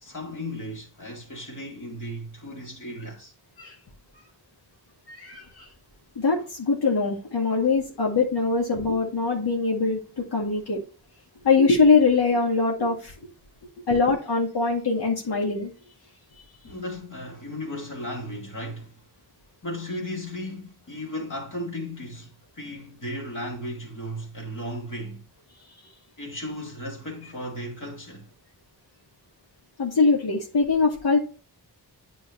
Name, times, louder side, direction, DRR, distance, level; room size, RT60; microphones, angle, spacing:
voice 1, 0.0-3.3 16.6-19.0 19.6-25.2 26.2-28.3, equal, 50° left, 2.6 m, -35 dB
voice 2, 5.1-5.7 6.2-10.8 11.4-13.1 13.9-15.7 29.8-31.2, left 4 dB, 75° left, 2.1 m, -22 dB
9.7 x 4.5 x 3.1 m
wide cardioid pair, 100°, 39 cm